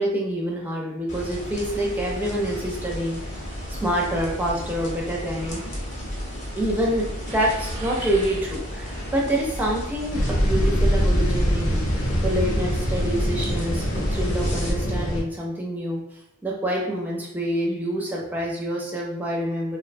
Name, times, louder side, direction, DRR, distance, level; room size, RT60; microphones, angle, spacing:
voice 1, 0.0-3.2 3.8-5.6 6.6-11.9 12.2-16.0 16.4-19.8, right 1 dB, 10° right, -3 dB, 0.4 m, -27 dB
sound 1, 1.1-14.7, equal, 35° left, 0.6 m, -34 dB
sound 2, 7.3-9.1, right 2 dB, 75° right, 0.6 m, -39 dB
sound 3, 10.1-15.2, equal, 85° left, 0.5 m, -23 dB
2.5 x 2.1 x 2.5 m, 0.80 s
head